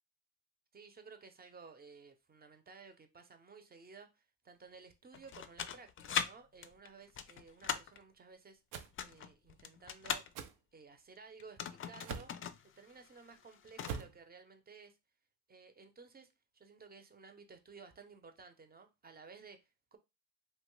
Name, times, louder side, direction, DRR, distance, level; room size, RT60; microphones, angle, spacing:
voice 1, 0.7-8.6 9.0-10.4 10.7-12.3 12.6-15.0 15.5-20.0, right 5 dB, 30° right, 0.6 m, -56 dB
sound 1, 5.1-6.3 6.6-8.0 8.8-10.3 11.4-12.6 12.9-13.0 13.4-14.0, left 8 dB, 45° left, 0.4 m, -39 dB
sound 2, 8.7-8.9 10.3-10.5 12.0-12.4 13.8-14.2, right 7 dB, 85° right, 0.5 m, -43 dB
2.8 x 2.2 x 3.1 m
cardioid pair, 90°, 30 cm